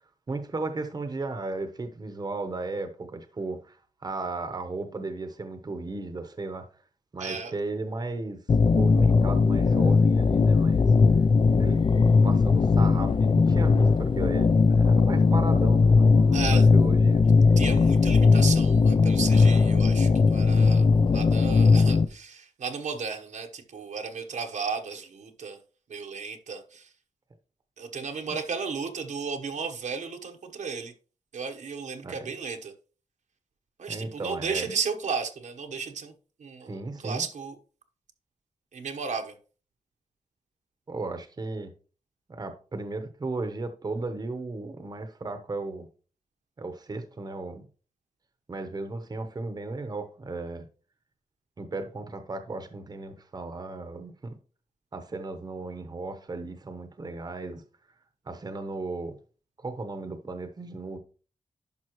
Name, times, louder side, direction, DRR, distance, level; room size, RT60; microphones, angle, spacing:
voice 1, 0.3-6.6 7.1-10.9 11.6-11.8 12.2-17.2 32.0-32.2 33.9-34.7 36.7-37.2 40.9-41.7 42.3-45.9 46.6-47.6 48.5-50.6 51.6-54.3 54.9-57.6 58.3-59.2 59.6-61.0, right 3 dB, 30° right, 0.9 m, -35 dB
voice 2, 7.2-7.5 16.3-16.7 17.6-20.9 21.1-25.6 25.9-26.9 27.8-30.9 31.3-32.7 33.8-36.1 36.4-37.6 38.7-39.3, right 5 dB, 75° right, 1.1 m, -34 dB
sound 1, 8.5-22.0, left 4 dB, 40° left, 0.5 m, -19 dB
11.0 x 5.5 x 3.1 m
wide cardioid pair, 120°, 13 cm